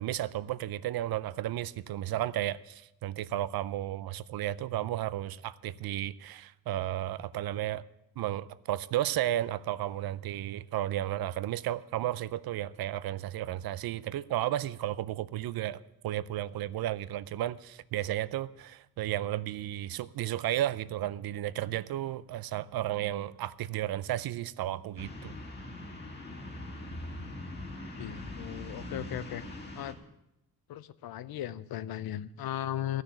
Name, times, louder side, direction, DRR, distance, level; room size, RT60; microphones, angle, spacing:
voice 1, 0.0-7.8 8.2-25.3, right 13 dB, 80° right, 0.6 m, -33 dB
sound 1, 25.0-29.9, left 1 dB, 30° left, 1.9 m, -42 dB
voice 2, 28.0-29.4 29.7-30.0 30.7-33.0, left 12 dB, 80° left, 0.7 m, -37 dB
14.0 x 6.5 x 9.8 m
wide cardioid pair, 170°, 36 cm